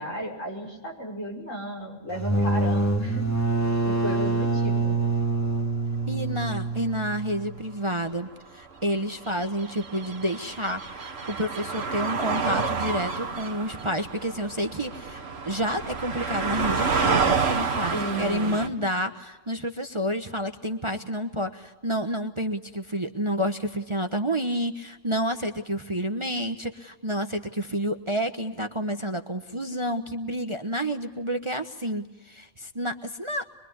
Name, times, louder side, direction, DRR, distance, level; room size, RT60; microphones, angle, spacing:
voice 1, 0.0-3.3 3.8-5.0 17.9-18.7, right 1 dB, 70° left, 0 dB, 6.4 m, -34 dB
sound 1, 2.1-7.6, right 3 dB, 10° left, 2.2 m, -25 dB
voice 2, 6.1-33.4, equal, 25° right, 6 dB, 1.1 m, -29 dB
sound 2, 6.3-6.4 8.8-18.7, right 5 dB, 55° right, 1.8 m, -29 dB
25.0 x 23.0 x 9.5 m, 1.1 s
omnidirectional pair, 1.4 m